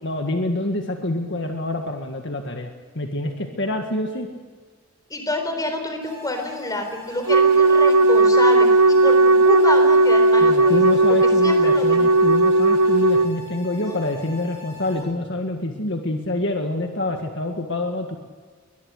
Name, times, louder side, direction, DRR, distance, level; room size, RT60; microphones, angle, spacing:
voice 1, 0.0-2.7 3.0-4.3 10.4-18.2, left 1 dB, 55° left, 4 dB, 1.9 m, -26 dB
voice 2, 5.1-10.8 11.4-12.2 13.7-14.0, left 2 dB, 15° left, 5 dB, 4.1 m, -28 dB
sound 1, 6.0-15.0, left 6 dB, 25° right, 7.2 m, -41 dB
Wind instrument woodwind instrument, 7.3-13.3, right 2 dB, 90° right, 0.9 m, -15 dB
23.5 x 21.0 x 6.6 m, 1.5 s
head